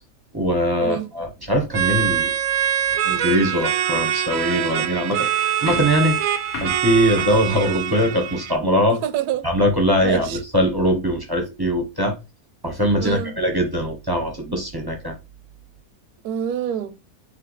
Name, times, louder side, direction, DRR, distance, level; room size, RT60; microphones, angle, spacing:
voice 1, 0.3-2.3 3.0-6.2 6.6-9.0 9.4-12.2 12.6-15.1, equal, 20° right, 0.7 m, -21 dB
sound 1, 1.7-8.6, right 10 dB, 70° right, 0.8 m, -24 dB
sound 2, 5.7-8.5, left 5 dB, 70° left, 1.6 m, -36 dB
voice 2, 9.0-9.5 10.0-10.4 13.0-13.3 16.2-17.0, right 9 dB, 85° right, 1.1 m, -26 dB
4.9 x 3.1 x 3.1 m
omnidirectional pair, 1.6 m